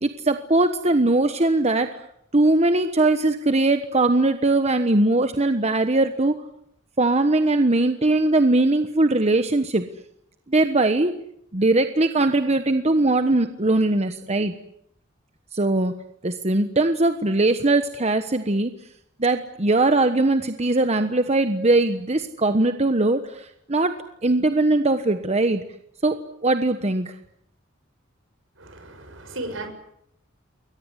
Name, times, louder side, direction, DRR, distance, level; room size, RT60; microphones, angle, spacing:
voice 1, 0.0-2.0 2.3-6.4 7.0-9.8 10.5-11.1 11.5-14.5 15.5-15.9 16.2-18.7 19.2-23.9 24.2-25.6 26.0-27.1, right 2 dB, 35° right, 8 dB, 1.2 m, -20 dB
voice 2, 28.6-29.7, right 2 dB, 70° right, 8 dB, 6.6 m, -35 dB
29.0 x 23.0 x 8.2 m, 0.75 s
head